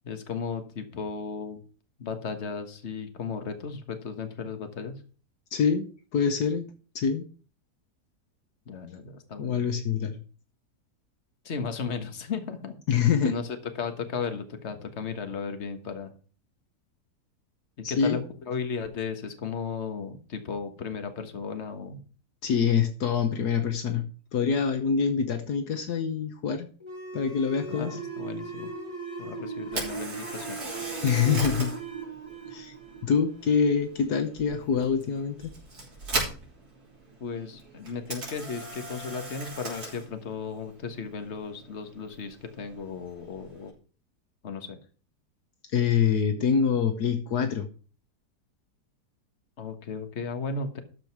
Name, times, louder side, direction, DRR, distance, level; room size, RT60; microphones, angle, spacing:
voice 1, 0.0-1.6 2.0-4.9 8.7-9.5 11.4-12.7 13.2-16.1 17.9-22.0 27.7-28.7 29.2-30.7 37.2-43.7 44.4-44.8 49.6-50.8, left 5 dB, 45° left, 7 dB, 1.6 m, -35 dB
voice 2, 5.5-6.7 6.9-7.3 9.4-10.2 12.9-13.3 17.8-18.2 22.4-24.1 24.3-26.7 27.1-28.0 31.0-31.7 32.5-32.7 33.0-35.5 45.7-47.7, left 6 dB, 70° left, 8 dB, 1.5 m, -25 dB
sound 1, 26.8-34.0, right 5 dB, 15° left, 2.1 m, -38 dB
Camera, 29.6-43.7, right 2 dB, 65° right, 4.1 m, -39 dB
12.5 x 5.2 x 6.0 m, 0.38 s
omnidirectional pair, 1.8 m